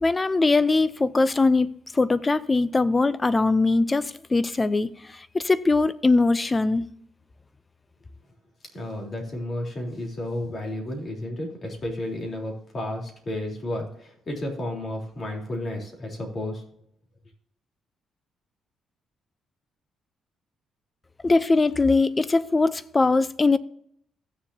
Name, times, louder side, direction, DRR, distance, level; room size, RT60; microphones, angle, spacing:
voice 1, 0.0-6.9 21.2-23.6, left 3 dB, 25° left, 0.6 m, -21 dB
voice 2, 8.7-16.6, left 1 dB, 45° left, 3.6 m, -32 dB
16.0 x 7.2 x 2.8 m
cardioid pair, 90°, 0 cm